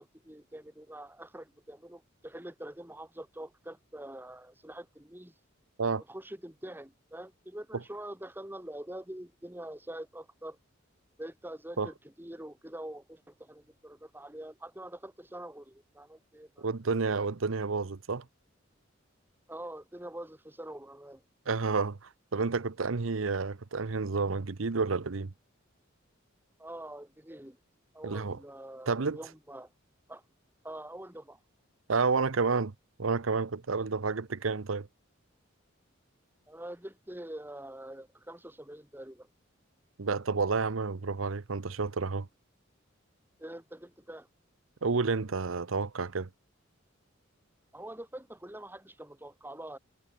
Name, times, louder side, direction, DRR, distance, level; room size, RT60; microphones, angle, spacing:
voice 1, 0.0-5.3 6.1-10.6 11.2-16.7 19.5-21.2 26.6-27.6 27.9-29.7 30.1-30.2 30.6-31.4 36.5-39.3 43.4-44.3 47.7-49.8, right 1 dB, 10° right, 3.0 m, -45 dB
voice 2, 16.6-18.2 21.5-25.3 28.0-28.4 28.9-29.2 31.9-32.7 33.0-34.9 40.0-42.3 44.8-46.3, right 4 dB, 85° right, 0.8 m, -30 dB
head